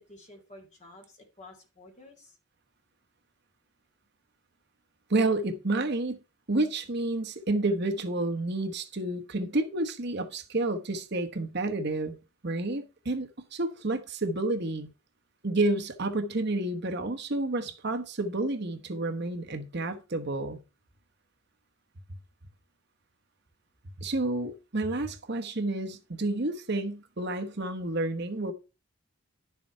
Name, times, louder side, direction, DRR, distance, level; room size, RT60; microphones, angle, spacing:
voice 1, 0.0-2.4, left 2 dB, 30° left, 3.1 m, -51 dB
voice 2, 5.1-6.2 6.5-12.2 12.4-14.9 15.4-20.6 24.0-28.5, right 2 dB, 50° right, 1.1 m, -30 dB
11.0 x 7.0 x 4.5 m
head